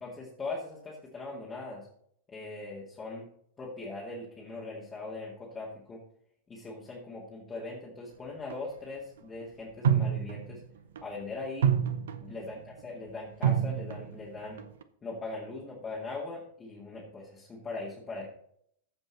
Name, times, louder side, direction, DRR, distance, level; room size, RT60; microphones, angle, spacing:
voice 1, 0.0-1.9 2.3-3.2 3.6-6.0 6.5-10.6 11.0-11.7 12.2-14.7 15.0-18.3, left 3 dB, 20° left, -5 dB, 2.2 m, -40 dB
sound 1, 8.5-8.6 9.8-10.6 11.0-11.2 11.6-12.5 13.4-14.2 14.6-14.8, right 8 dB, 60° right, 0.7 m, -27 dB
14.5 x 5.3 x 4.2 m, 0.68 s
figure-of-eight pair, 90°, 0 cm